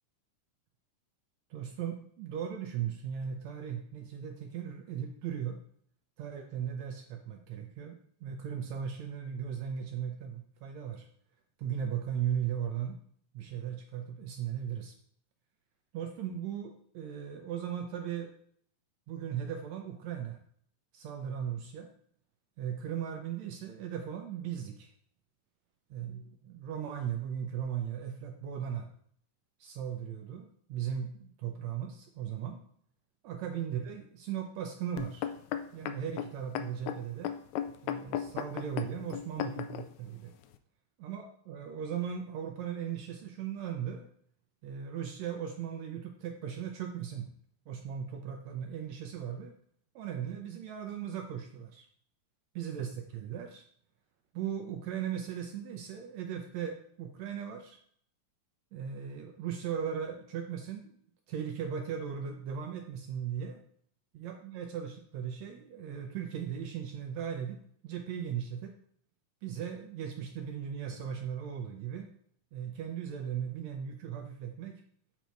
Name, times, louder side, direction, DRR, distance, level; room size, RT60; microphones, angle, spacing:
voice 1, 1.5-5.6 6.2-11.1 11.6-13.0 13.3-14.9 15.9-18.3 19.1-20.4 20.9-21.9 22.6-24.9 25.9-28.9 29.6-32.6 33.2-35.3 35.7-37.4 37.8-40.3 41.0-44.1 44.6-47.3 47.7-49.5 50.0-51.9 52.6-53.6 54.3-57.8 58.7-61.0 61.3-63.6 64.1-67.6 67.8-68.7 69.4-72.1 72.5-74.8, right 8 dB, 75° right, 4 dB, 1.7 m, -37 dB
sound 1, 35.0-39.9 40.5-40.6, left 10 dB, 85° left, 1.6 m, -35 dB
8.2 x 4.4 x 4.5 m, 0.63 s
omnidirectional pair, 3.7 m